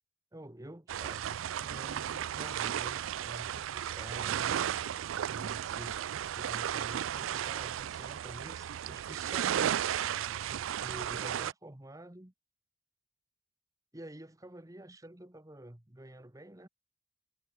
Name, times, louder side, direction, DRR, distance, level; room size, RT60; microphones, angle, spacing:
voice 1, 0.3-4.6 5.3-9.8 10.5-12.3 13.9-16.7, right 1 dB, 15° right, 1.2 m, -49 dB
sound 1, 0.9-11.5, right 10 dB, 85° right, 0.4 m, -34 dB
head